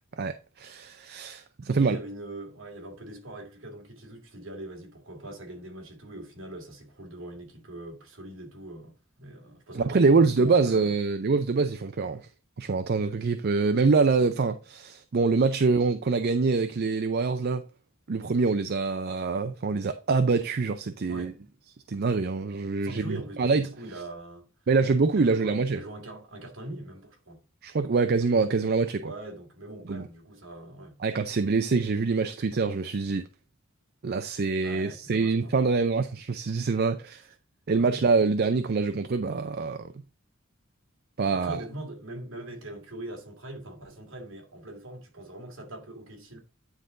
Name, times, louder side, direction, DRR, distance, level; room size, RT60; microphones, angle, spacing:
voice 1, 0.2-2.0 9.7-12.3 12.6-17.6 18.1-21.3 21.9-23.6 24.7-25.8 27.6-29.1 29.9-30.1 31.0-33.3 34.0-37.2 37.7-39.9 41.2-41.6, right 4 dB, 50° right, 0.5 m, -25 dB
voice 2, 1.7-10.9 21.1-21.4 22.8-24.4 25.1-27.4 29.0-31.0 34.6-35.6 37.7-38.0 41.3-46.4, right 1 dB, 65° right, 2.5 m, -42 dB
9.7 x 3.9 x 3.8 m
head